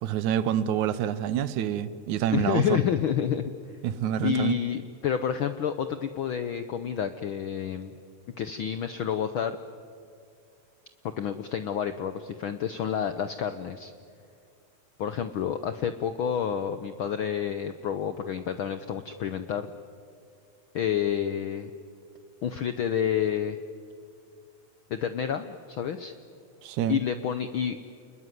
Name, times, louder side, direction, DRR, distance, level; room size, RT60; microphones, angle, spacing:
voice 1, 0.0-2.8 3.8-4.6 26.6-27.0, right 10 dB, 80° right, 15 dB, 2.3 m, -27 dB
voice 2, 2.3-3.5 4.2-7.9 8.4-9.6 11.2-13.9 15.0-19.7 20.7-21.7 22.4-23.6 24.9-26.1 26.9-27.8, left 8 dB, 75° left, 10 dB, 1.2 m, -29 dB
29.5 x 21.0 x 9.4 m, 2.3 s
omnidirectional pair, 3.4 m